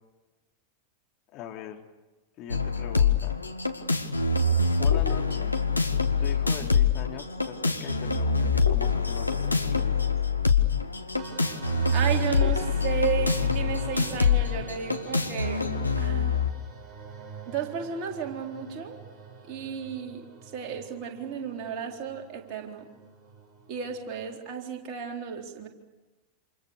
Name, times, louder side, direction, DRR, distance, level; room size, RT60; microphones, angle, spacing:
voice 1, 1.3-1.8 2.4-3.4 4.8-5.6 6.2-10.1, left 10 dB, 35° left, 2 dB, 3.6 m, -41 dB
sound 1, 2.5-16.5, left 4 dB, 85° left, 1.6 m, -25 dB
sound 2, 11.2-24.4, right 5 dB, 20° right, 6.7 m, -46 dB
voice 2, 11.9-15.7 16.0-16.4 17.5-19.0 19.5-20.3 20.5-22.9 23.7-25.7, right 7 dB, 40° right, 1 dB, 4.1 m, -33 dB
28.5 x 27.5 x 6.9 m, 1.1 s
figure-of-eight pair, 90°, 0 cm